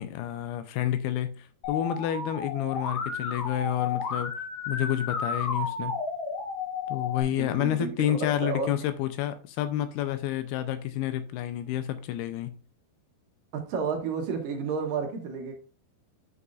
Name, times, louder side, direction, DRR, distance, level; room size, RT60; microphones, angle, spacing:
voice 1, 0.0-4.3 4.7-5.9 6.9-12.5, left 11 dB, 85° left, 2.6 m, -29 dB
Musical instrument, 1.6-7.2, left 5 dB, 60° left, 2.9 m, -33 dB
voice 2, 7.4-8.7 13.5-15.5, right 5 dB, 70° right, 2.4 m, -31 dB
9.4 x 5.7 x 2.5 m
omnidirectional pair, 4.6 m